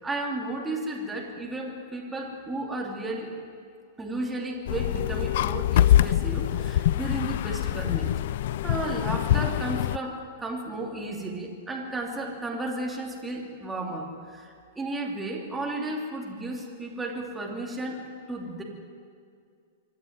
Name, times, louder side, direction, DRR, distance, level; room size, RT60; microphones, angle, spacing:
voice 1, 0.0-3.3 4.0-8.1 8.6-18.6, right 2 dB, 10° right, -1 dB, 2.8 m, -33 dB
sound 1, 4.7-10.0, left 12 dB, 60° left, 0.4 m, -24 dB
25.0 x 11.0 x 9.4 m, 2.2 s
hypercardioid pair, 150°, 0 cm